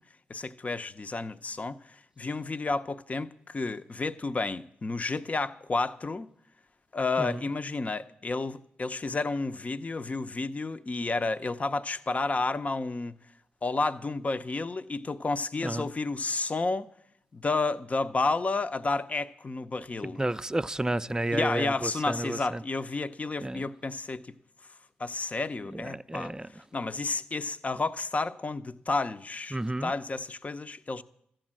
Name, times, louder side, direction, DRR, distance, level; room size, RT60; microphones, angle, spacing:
voice 1, 0.3-6.3 6.9-13.2 13.6-16.9 17.3-20.2 21.3-24.3 25.0-26.3 26.7-31.0, left 3 dB, 35° left, 0.7 m, -31 dB
voice 2, 7.2-7.5 15.6-15.9 20.0-22.6 23.4-23.7 25.7-26.5 29.5-29.9, right 1 dB, 15° right, 0.5 m, -31 dB
13.5 x 8.9 x 7.5 m
supercardioid pair, 55°, 4 cm